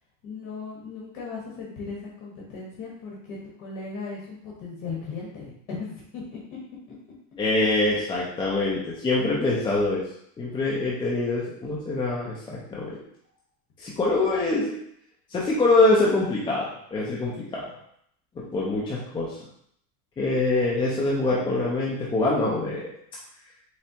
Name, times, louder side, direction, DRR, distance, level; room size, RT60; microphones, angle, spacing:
voice 1, 0.2-5.5 5.8-6.6 18.4-18.5, left 4 dB, 50° left, -4 dB, 1.3 m, -37 dB
voice 2, 7.4-10.0 10.4-12.9 13.8-14.8 15.3-17.6 18.5-19.4 20.2-22.8, left 2 dB, 10° left, -5 dB, 0.3 m, -24 dB
4.2 x 3.4 x 2.8 m, 0.69 s
supercardioid pair, 140°, 45 cm